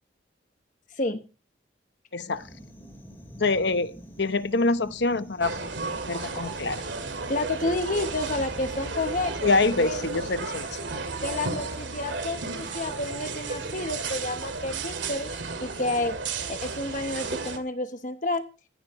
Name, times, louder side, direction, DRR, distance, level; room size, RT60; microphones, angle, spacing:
voice 1, 2.1-2.4 3.4-5.7 6.1-6.8 9.4-10.8, left 3 dB, 70° left, 12 dB, 1.0 m, -25 dB
sound 1, 2.3-11.8, equal, 10° left, 4.1 m, -49 dB
sound 2, 5.4-17.6, right 4 dB, 80° right, 2.2 m, -33 dB
voice 2, 7.3-9.3 9.8-10.0 11.2-16.1 16.5-18.4, left 2 dB, 45° left, 7 dB, 1.0 m, -30 dB
17.5 x 14.5 x 3.1 m, 0.35 s
head